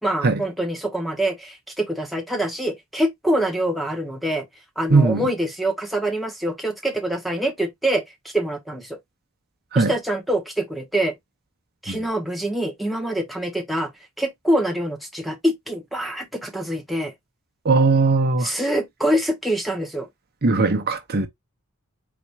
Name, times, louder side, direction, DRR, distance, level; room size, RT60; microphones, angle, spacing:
voice 1, 0.0-4.5 4.8-9.0 9.7-11.1 11.8-13.9 14.2-17.1 18.4-20.1, right 1 dB, ahead, 0.8 m, -25 dB
voice 2, 4.9-5.3 9.7-9.9 11.9-12.0 17.6-18.5 20.4-21.3, right 3 dB, 45° right, 0.8 m, -19 dB
4.2 x 2.5 x 4.5 m
head